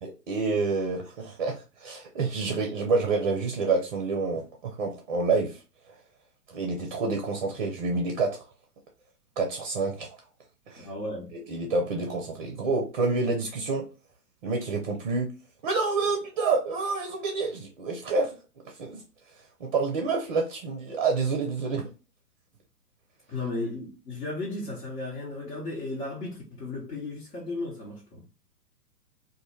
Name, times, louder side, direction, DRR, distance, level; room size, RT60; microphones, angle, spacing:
voice 1, 0.0-5.6 6.5-8.4 9.4-10.1 10.7-10.9 11.3-13.9 14.4-15.3 15.6-18.4 18.8-19.0 19.6-21.9, right 4 dB, 35° right, 0.4 m, -28 dB
voice 2, 10.8-11.3 23.3-28.2, left 2 dB, 75° left, 1.1 m, -35 dB
2.2 x 2.0 x 3.0 m
figure-of-eight pair, 120°, 46 cm